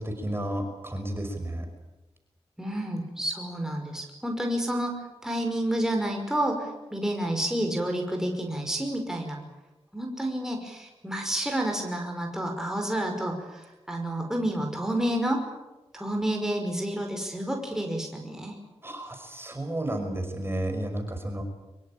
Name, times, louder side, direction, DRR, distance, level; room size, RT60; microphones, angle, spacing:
voice 1, 0.0-1.7 18.8-21.4, right 1 dB, 20° right, 5 dB, 5.7 m, -32 dB
voice 2, 2.6-4.9 5.2-9.4 9.9-15.4 15.9-18.5, right 1 dB, 5° right, 2 dB, 5.6 m, -29 dB
24.0 x 23.0 x 8.8 m, 1.1 s
cardioid pair, 70°, 11 cm